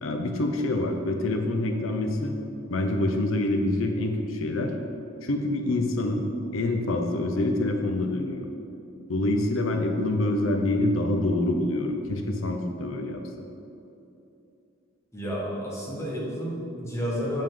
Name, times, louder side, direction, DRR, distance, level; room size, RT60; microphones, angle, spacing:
voice 1, 0.0-2.3 2.7-4.7 5.2-8.5 9.1-13.2, left 1 dB, 85° left, 4 dB, 0.6 m, -26 dB
voice 2, 15.1-17.4, equal, 15° left, -5 dB, 1.2 m, -31 dB
6.9 x 5.4 x 3.7 m, 2.8 s
head